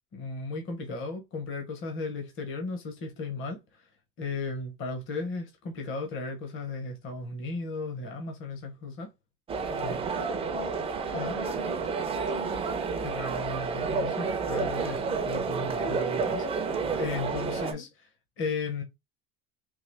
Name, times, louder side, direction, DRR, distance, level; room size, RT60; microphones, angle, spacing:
voice 1, 0.1-3.9 4.2-9.1 9.8-10.0 11.1-11.3 13.0-18.1 18.4-18.8, left 3 dB, 40° left, 0.9 m, -35 dB
sound 1, 9.5-17.7, right 5 dB, 15° right, 0.5 m, -30 dB
voice 2, 10.1-10.8 11.1-12.7 17.7-17.8, left 5 dB, 85° left, 2.0 m, -42 dB
3.7 x 2.8 x 3.3 m
cardioid pair, 175°, 33 cm